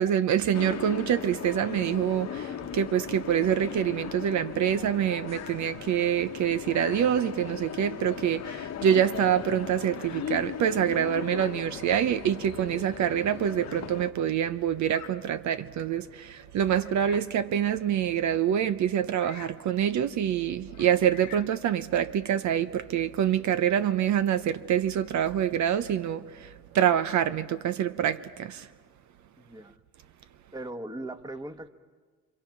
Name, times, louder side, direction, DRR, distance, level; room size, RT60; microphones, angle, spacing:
voice 1, 0.0-26.5 26.7-28.7, right 9 dB, 70° right, 0.8 m, -26 dB
sound 1, 0.5-14.1, left 9 dB, 60° left, 1.1 m, -38 dB
Bird vocalization bird call bird song, 3.5-4.2 5.2-5.7 6.7-7.2 8.3-8.8 9.9-10.4 10.9-11.6 12.4-12.5 13.6-13.9 14.8-15.2 15.8-15.9 16.6-17.4 19.1-19.6 20.7-21.6, left 12 dB, 80° left, 1.3 m, -48 dB
voice 2, 29.4-29.8 30.5-31.7, right 1 dB, 15° right, 1.2 m, -39 dB
26.5 x 26.0 x 5.9 m
cardioid pair, 90°, 30 cm